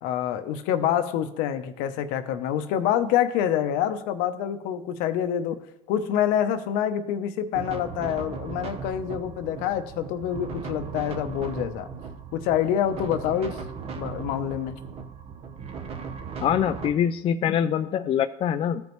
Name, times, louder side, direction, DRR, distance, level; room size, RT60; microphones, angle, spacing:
voice 1, 0.0-5.6 5.9-11.9 12.3-13.6 13.9-14.8, left 10 dB, 70° left, 9 dB, 0.8 m, -26 dB
sound 1, 7.5-16.9, right 6 dB, 45° right, 0.9 m, -37 dB
voice 2, 16.4-18.8, left 9 dB, 40° left, 9 dB, 0.4 m, -24 dB
14.5 x 5.3 x 3.1 m, 0.87 s
supercardioid pair, 100°, 15 cm